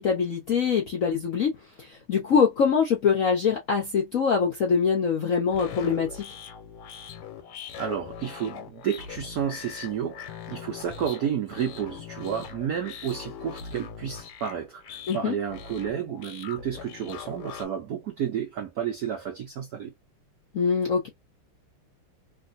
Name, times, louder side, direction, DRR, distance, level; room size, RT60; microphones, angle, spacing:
voice 1, 0.0-1.5 1.8-6.3 15.1-15.4 20.5-21.1, left 6 dB, 65° left, 0.8 m, -24 dB
sound 1, 5.5-17.7, left 7 dB, 85° left, 1.7 m, -41 dB
voice 2, 7.8-19.9, right 8 dB, 75° right, 0.8 m, -31 dB
3.5 x 2.5 x 2.5 m
omnidirectional pair, 2.4 m